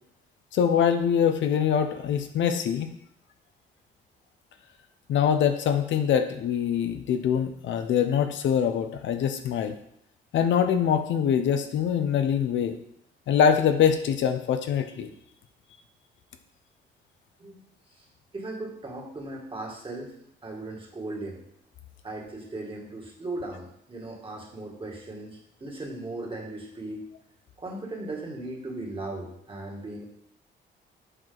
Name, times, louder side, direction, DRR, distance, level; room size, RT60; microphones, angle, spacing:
voice 1, 0.5-2.9 5.1-9.8 10.3-12.8 13.3-15.1, left 8 dB, 70° left, 7 dB, 0.7 m, -24 dB
voice 2, 18.3-20.1 20.4-21.4 22.0-27.0 27.6-30.0, right 2 dB, 25° right, -2 dB, 2.2 m, -37 dB
7.9 x 4.6 x 4.0 m, 0.73 s
cardioid pair, 90°, 20 cm